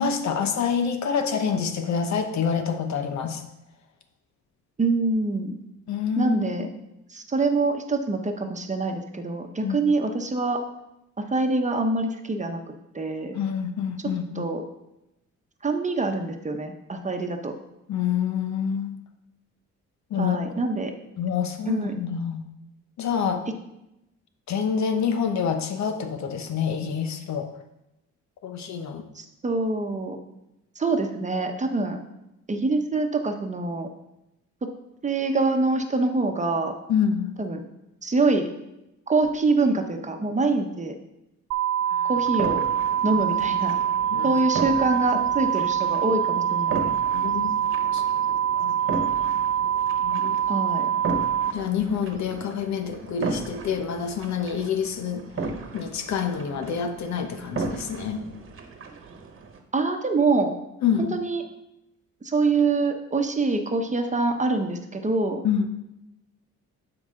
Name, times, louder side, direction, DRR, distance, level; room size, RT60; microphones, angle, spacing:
voice 1, 0.0-3.4 5.9-6.7 9.6-9.8 13.3-14.4 17.9-18.9 20.1-20.4 21.2-22.4 23.0-23.4 24.5-27.5 28.4-29.1 36.9-37.4 41.9-42.1 44.1-44.4 47.1-47.5 47.9-48.0 48.6-48.7 50.0-50.4 51.5-55.2 55.7-58.2 60.8-61.2 65.4-65.7, left 7 dB, 65° left, 7 dB, 1.0 m, -27 dB
voice 2, 4.8-5.5 6.2-6.7 7.1-10.6 11.2-12.6 12.9-13.4 14.0-14.6 15.6-17.5 20.2-20.9 21.7-21.9 29.1-30.2 30.8-32.0 32.5-33.9 34.6-34.7 35.0-36.7 37.4-37.6 38.0-38.5 39.1-40.9 42.0-42.6 43.0-43.7 44.2-46.9 50.5-50.9 59.7-60.5 61.0-61.4 62.2-65.4, right 3 dB, 25° right, 5 dB, 1.0 m, -25 dB
sound 1, 41.5-51.5, right 9 dB, 60° right, 0.6 m, -24 dB
sound 2, 42.1-59.6, right 3 dB, 45° right, 1.2 m, -36 dB
11.5 x 4.9 x 3.7 m, 0.89 s
cardioid pair, 90°, 30 cm